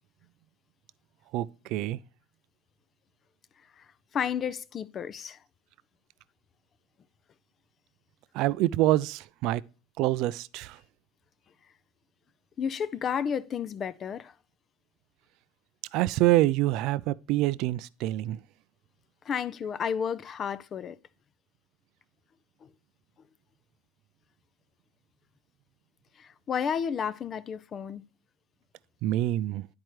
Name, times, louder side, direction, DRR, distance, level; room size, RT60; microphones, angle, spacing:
voice 1, 1.3-2.0 8.3-9.6 10.0-10.8 15.9-18.4 29.0-29.7, right 15 dB, 60° right, 0.3 m, -26 dB
voice 2, 4.1-5.4 12.6-14.3 19.3-21.0 26.2-28.0, left 7 dB, 35° left, 0.4 m, -31 dB
10.5 x 4.5 x 3.0 m
supercardioid pair, 120°, 0 cm